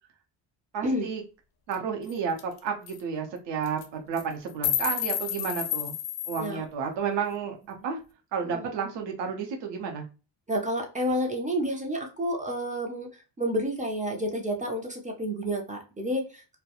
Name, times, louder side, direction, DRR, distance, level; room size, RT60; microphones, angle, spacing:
voice 1, 0.7-1.2 1.7-5.9 6.3-8.0 8.3-10.1, right 6 dB, 70° right, 2 dB, 0.7 m, -31 dB
sound 1, 1.7-1.8 2.1-2.2 2.4-2.6 2.9-3.0 3.6-3.9 4.2-6.5, left 10 dB, 55° left, 0.5 m, -30 dB
voice 2, 10.5-13.1 13.4-16.6, equal, 20° right, 2 dB, 0.3 m, -30 dB
2.3 x 2.1 x 2.8 m, 0.32 s
cardioid pair, 160°, 44 cm